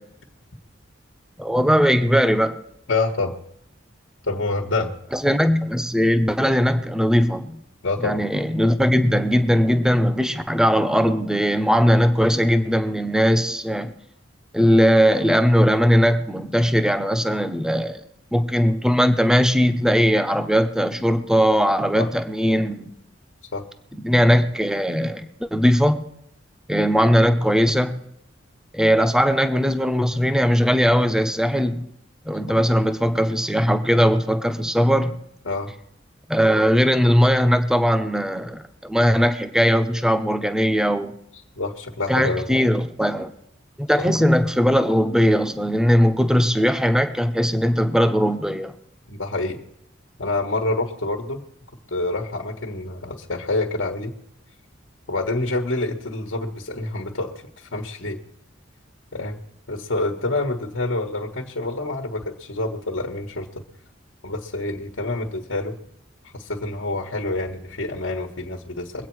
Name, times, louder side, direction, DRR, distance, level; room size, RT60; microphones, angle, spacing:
voice 1, 1.4-2.6 5.1-7.6 8.0-14.0 14.5-18.0 18.3-22.9 24.0-26.1 26.7-28.0 28.7-31.8 32.2-35.2 36.3-41.1 42.1-43.3 43.8-48.7, equal, 5° right, 8 dB, 0.7 m, -19 dB
voice 2, 2.9-3.3 4.2-4.9 7.8-8.2 22.0-22.1 23.5-23.7 35.5-35.7 41.6-42.5 44.0-44.1 49.1-49.6 50.2-51.4 51.9-54.2 55.1-58.2 59.1-59.4 59.7-63.6 64.2-65.8 66.3-69.1, left 2 dB, 85° left, 3 dB, 1.4 m, -27 dB
22.5 x 8.4 x 4.7 m, 0.75 s
head